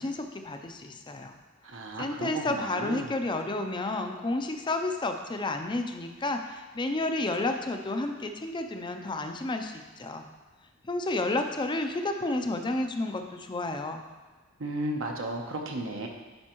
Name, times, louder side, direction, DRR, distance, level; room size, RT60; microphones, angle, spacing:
voice 1, 0.0-1.4 2.0-10.3 10.8-14.0, left 2 dB, 25° left, 6 dB, 0.5 m, -31 dB
voice 2, 1.6-3.1 14.6-16.1, right 1 dB, 70° right, 2 dB, 0.8 m, -34 dB
10.5 x 4.4 x 3.0 m, 1.4 s
head